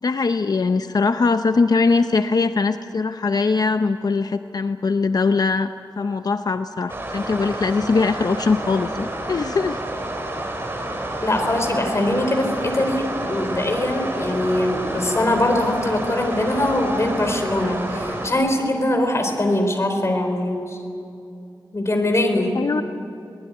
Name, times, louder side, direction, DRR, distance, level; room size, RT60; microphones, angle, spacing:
voice 1, 0.0-9.8 22.3-22.8, left 4 dB, 55° left, 9 dB, 0.7 m, -21 dB
sound 1, 6.9-18.3, right 1 dB, 30° right, 3.6 m, -29 dB
voice 2, 11.2-20.8 21.7-22.5, left 1 dB, 35° left, 4 dB, 4.1 m, -22 dB
24.0 x 19.5 x 9.4 m, 2.6 s
wide cardioid pair, 110°, 8 cm